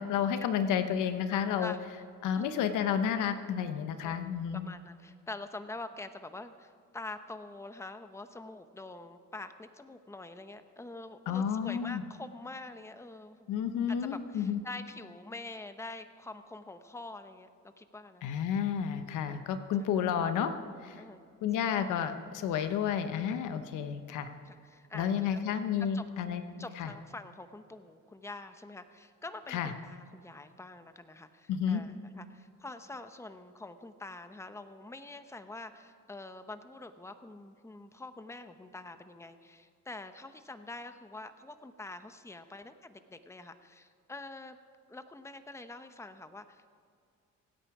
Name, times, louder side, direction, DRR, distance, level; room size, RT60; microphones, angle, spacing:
voice 1, 0.0-1.7 2.2-4.7 11.3-12.0 13.5-14.6 18.2-20.5 20.8-21.0 21.4-24.3 24.9-26.4 26.8-26.9 29.5-29.7 31.5-31.8, left 8 dB, 90° left, 9 dB, 1.0 m, -31 dB
voice 2, 4.0-4.3 4.6-13.5 14.1-18.3 21.0-21.8 24.5-25.3 25.9-26.0 26.6-44.6 44.9-46.7, left 2 dB, 10° left, 10 dB, 0.9 m, -46 dB
25.0 x 9.0 x 4.9 m, 2.2 s
cardioid pair, 90°, 30 cm